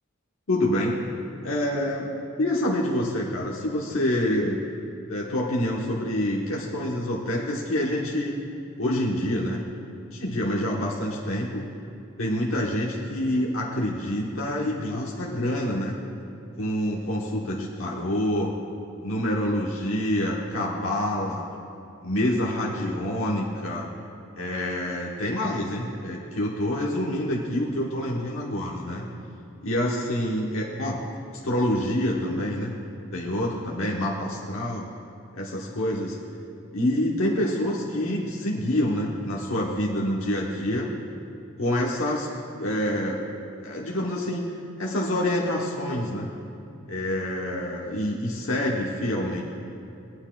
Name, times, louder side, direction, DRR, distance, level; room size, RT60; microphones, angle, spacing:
voice 1, 0.5-1.1 1.4-4.6 5.1-8.4 8.8-9.6 10.1-11.7 12.2-16.0 16.6-18.5 19.0-21.4 22.0-23.9 24.4-29.1 29.6-31.0 31.4-32.7 33.1-34.9 35.3-36.2 36.7-40.9 41.6-42.3 42.6-43.2 43.6-44.4 44.8-46.3 46.9-49.4, left 1 dB, 80° left, -3 dB, 1.0 m, -27 dB
19.5 x 9.7 x 2.3 m, 2.8 s
head